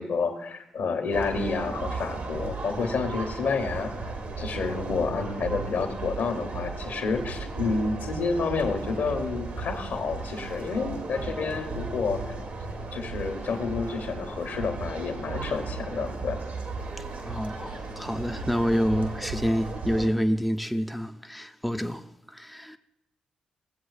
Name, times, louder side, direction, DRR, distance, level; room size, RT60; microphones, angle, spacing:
voice 1, 0.0-3.9 4.4-12.3 12.9-16.4, left 4 dB, 70° left, 1.1 m, -29 dB
sound 1, 1.1-20.1, right 3 dB, 65° right, 1.3 m, -35 dB
voice 2, 17.2-22.8, equal, ahead, 0.4 m, -28 dB
16.0 x 7.8 x 2.4 m
hypercardioid pair, 40°, 3 cm